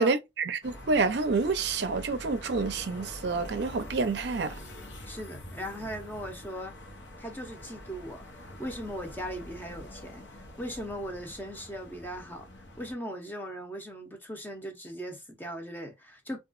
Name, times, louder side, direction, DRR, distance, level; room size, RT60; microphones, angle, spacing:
voice 1, 0.0-4.6, right 4 dB, 65° right, 0.5 m, -28 dB
sound 1, 0.6-12.9, left 1 dB, 80° left, 0.8 m, -45 dB
voice 2, 5.1-6.7 7.2-8.3 8.6-12.5 12.8-16.4, equal, 10° left, 0.6 m, -39 dB
2.8 x 2.3 x 2.4 m
head